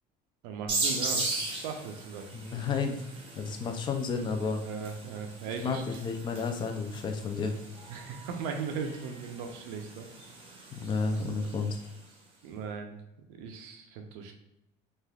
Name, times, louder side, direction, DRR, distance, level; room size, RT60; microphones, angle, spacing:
voice 1, 0.4-2.3 4.7-6.0 7.9-10.1 12.4-13.0 13.3-14.3, right 5 dB, 85° right, 4 dB, 0.5 m, -38 dB
sound 1, 0.7-12.0, right 2 dB, 30° right, 0.7 m, -38 dB
voice 2, 2.3-3.0 3.4-4.6 5.6-7.5 10.7-11.8, left 4 dB, 25° left, 4 dB, 0.4 m, -31 dB
3.2 x 2.4 x 2.3 m, 0.84 s
cardioid pair, 125°, 18 cm